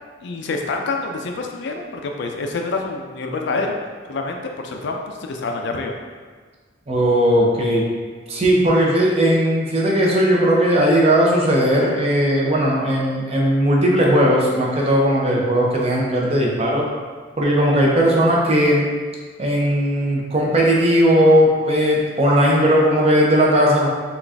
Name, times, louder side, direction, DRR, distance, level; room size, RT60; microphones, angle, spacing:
voice 1, 0.2-3.8 4.1-5.9, left 3 dB, 65° left, 2 dB, 0.4 m, -27 dB
voice 2, 6.9-7.8 8.3-16.9 17.4-18.8 19.4-23.9, equal, 35° right, -3 dB, 0.6 m, -17 dB
3.9 x 2.4 x 3.4 m, 1.5 s
head